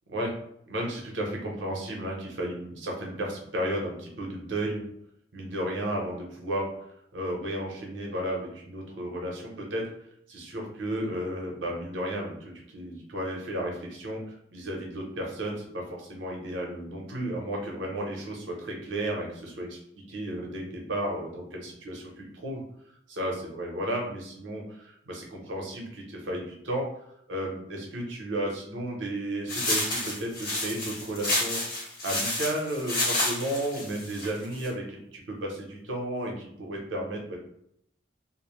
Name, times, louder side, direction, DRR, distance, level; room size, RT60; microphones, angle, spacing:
voice 1, 0.7-4.9 5.3-6.7 7.1-9.9 10.3-19.8 20.1-22.6 23.1-26.9 27.3-31.6 32.0-37.4, right 1 dB, 90° right, -1 dB, 0.8 m, -33 dB
sound 1, 29.5-34.7, left 1 dB, 55° left, 1.1 m, -30 dB
2.6 x 2.1 x 3.0 m, 0.73 s
head